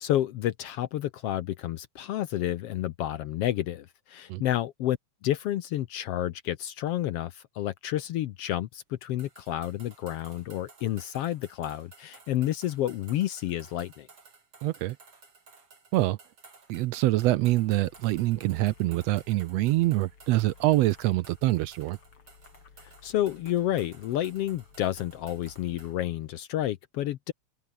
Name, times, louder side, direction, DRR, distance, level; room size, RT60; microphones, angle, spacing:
voice 1, 0.0-5.0 5.2-14.1 23.0-27.3, left 13 dB, 70° left, 1.6 m, -30 dB
sound 1, 9.2-26.0, right 4 dB, 50° right, 5.2 m, -56 dB
voice 2, 14.6-15.0 15.9-16.2 16.7-22.0, right 17 dB, 75° right, 1.6 m, -25 dB
sound 2, 17.3-25.9, left 6 dB, 45° left, 3.5 m, -57 dB
open air
omnidirectional pair, 3.3 m